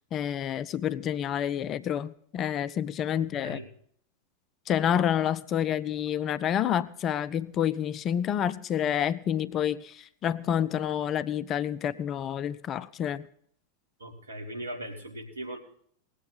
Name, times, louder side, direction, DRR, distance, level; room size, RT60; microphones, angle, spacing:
voice 1, 0.1-3.6 4.7-13.3, left 9 dB, 30° left, 14 dB, 0.5 m, -28 dB
voice 2, 3.1-3.7 14.0-15.6, right 1 dB, 75° right, 2 dB, 2.4 m, -39 dB
19.5 x 8.1 x 5.6 m, 0.64 s
figure-of-eight pair, 90°, 0 cm